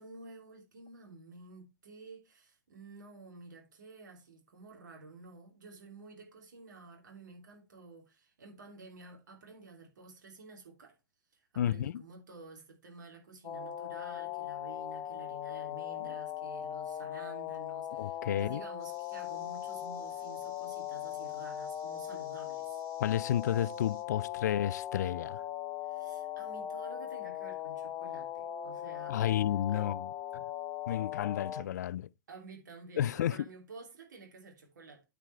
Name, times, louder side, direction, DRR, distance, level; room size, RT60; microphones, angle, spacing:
voice 1, 0.0-11.0 11.3-22.8 25.8-29.3 29.7-29.9 32.3-35.0, right 3 dB, 60° right, 2.9 m, -51 dB
voice 2, 11.6-12.0 18.0-18.6 23.0-25.4 29.1-30.4 30.9-32.1 33.0-33.4, left 11 dB, 55° left, 0.4 m, -31 dB
sound 1, 13.4-31.6, left 11 dB, 25° left, 0.9 m, -39 dB
sound 2, 18.8-24.0, right 6 dB, 45° right, 3.8 m, -62 dB
8.9 x 5.1 x 4.4 m
figure-of-eight pair, 105°, 11 cm